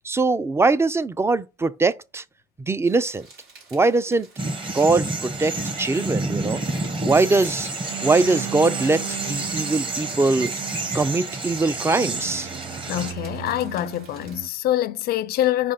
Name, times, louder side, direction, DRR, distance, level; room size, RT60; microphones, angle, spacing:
voice 1, 0.0-2.2 2.6-3.3 3.7-4.3 4.7-6.6 7.0-7.7 8.0-10.5 10.9-12.5, right 3 dB, 15° right, 0.5 m, -21 dB
sound 1, 2.9-14.4, right 3 dB, 80° right, 3.3 m, -51 dB
sound 2, 4.4-13.1, right 2 dB, 30° right, 1.3 m, -29 dB
sound 3, 7.9-14.5, right 11 dB, 55° right, 0.6 m, -37 dB
voice 2, 12.9-15.7, left 13 dB, 65° left, 0.5 m, -25 dB
5.2 x 5.0 x 5.8 m
cardioid pair, 110°, 17 cm